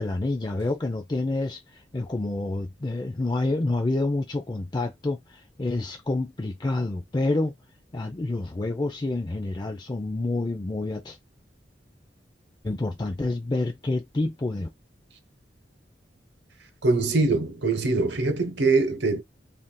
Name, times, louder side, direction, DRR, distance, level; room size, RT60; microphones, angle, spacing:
voice 1, 0.0-7.5 7.9-11.2 12.6-14.7, left 2 dB, 25° left, 0.4 m, -28 dB
voice 2, 16.8-19.2, right 3 dB, 70° right, 0.8 m, -23 dB
3.6 x 2.5 x 2.3 m
head